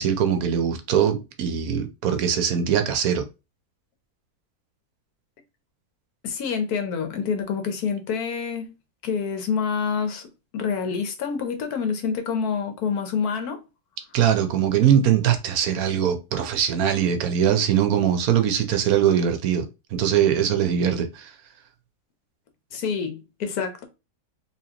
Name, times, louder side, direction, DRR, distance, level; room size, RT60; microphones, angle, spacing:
voice 1, 0.0-3.3 14.1-19.7 19.9-21.3, right 9 dB, 70° right, 1.1 m, -21 dB
voice 2, 6.2-8.8 9.0-10.3 10.5-13.6 22.7-23.8, left 6 dB, 75° left, 1.3 m, -27 dB
4.2 x 2.8 x 2.8 m
omnidirectional pair, 1.6 m